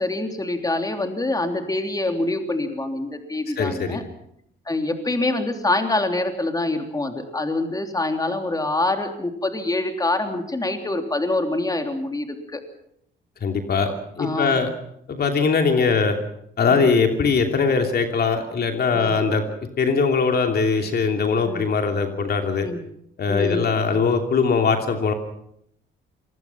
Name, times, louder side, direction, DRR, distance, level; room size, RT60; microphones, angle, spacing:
voice 1, 0.0-4.0 4.7-12.6 14.2-14.6 18.9-19.2 21.4-21.6 22.6-22.8 23.3-23.7, left 2 dB, 20° left, 5 dB, 3.3 m, -25 dB
voice 2, 3.6-4.0 13.4-13.9 14.2-14.7 15.1-16.2 16.6-19.4 19.8-22.7 23.2-25.1, left 5 dB, 55° left, 4 dB, 2.9 m, -21 dB
26.0 x 20.5 x 6.0 m, 0.73 s
cardioid pair, 90°, 20 cm